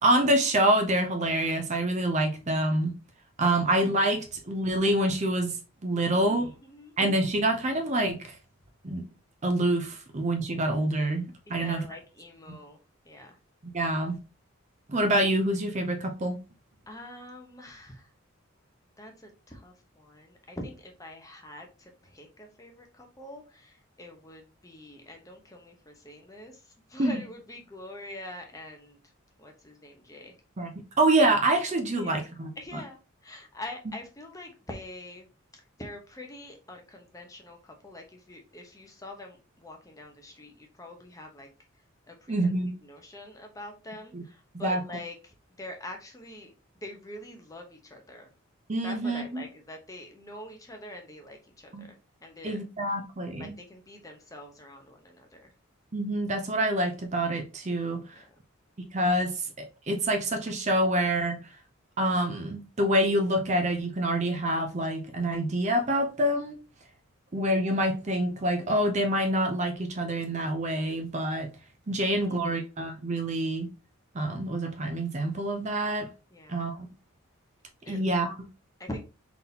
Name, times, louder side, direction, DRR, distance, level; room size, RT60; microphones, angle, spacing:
voice 1, 0.0-2.9 3.4-5.6 5.8-6.5 7.0-8.3 8.8-9.0 9.4-11.9 13.7-14.2 14.9-16.4 27.0-27.2 30.6-30.7 31.0-32.5 42.3-42.7 44.1-44.2 44.6-44.8 48.7-49.4 51.7-51.8 52.4-53.5 55.9-58.0 58.9-61.4 62.0-66.6 67.3-71.5 71.9-73.7 74.1-76.1 76.5-76.9 77.9-78.5, right 1 dB, 35° right, 0.6 m, -26 dB
voice 2, 6.1-6.9 11.5-12.8 13.0-13.4 16.9-18.1 19.0-26.6 26.9-29.0 29.4-30.3 32.0-32.3 32.6-35.3 35.5-41.5 42.1-42.5 42.8-46.5 46.8-48.3 48.8-52.0 52.2-52.6 52.9-53.0 53.4-55.5 58.1-58.3 72.0-72.6 76.3-76.7 77.8-78.0 78.8-79.1, left 1 dB, 15° left, 0.8 m, -45 dB
3.9 x 3.8 x 2.8 m
head